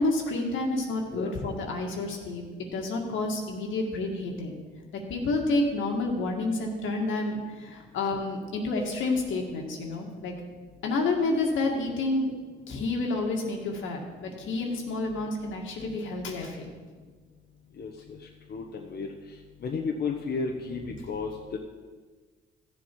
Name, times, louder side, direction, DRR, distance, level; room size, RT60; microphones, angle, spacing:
voice 1, 0.0-4.6 5.1-10.3 10.8-12.3 12.7-16.7, left 2 dB, 80° left, 1 dB, 2.0 m, -29 dB
voice 2, 17.8-18.2 18.5-19.1 19.6-21.6, left 4 dB, 55° left, 1 dB, 1.1 m, -33 dB
14.5 x 7.3 x 4.7 m, 1.4 s
cardioid pair, 90°, 20 cm